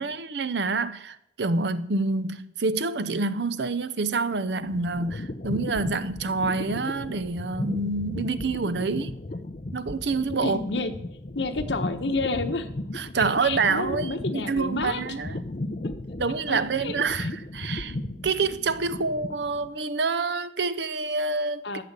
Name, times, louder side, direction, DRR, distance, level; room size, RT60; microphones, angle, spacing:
voice 1, 0.0-9.2 9.7-10.6 12.9-15.4 16.2-18.0 18.2-21.6, right 4 dB, 75° right, 0.7 m, -27 dB
sound 1, 4.3-19.8, left 1 dB, 45° left, 0.6 m, -35 dB
voice 2, 10.4-10.9 11.3-12.7 13.2-15.0 16.5-16.9 21.6-21.8, left 3 dB, 80° left, 1.2 m, -30 dB
12.0 x 7.0 x 8.1 m
head